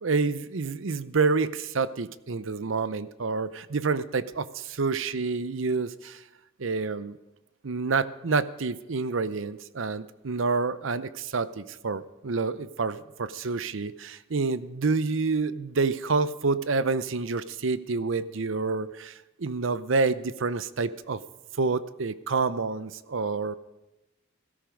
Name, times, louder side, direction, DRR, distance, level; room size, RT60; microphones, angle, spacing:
voice 1, 0.0-6.2 6.6-7.2 7.6-21.2 21.6-23.6, right 4 dB, 75° right, 15 dB, 0.7 m, -28 dB
17.0 x 14.0 x 5.2 m, 0.98 s
head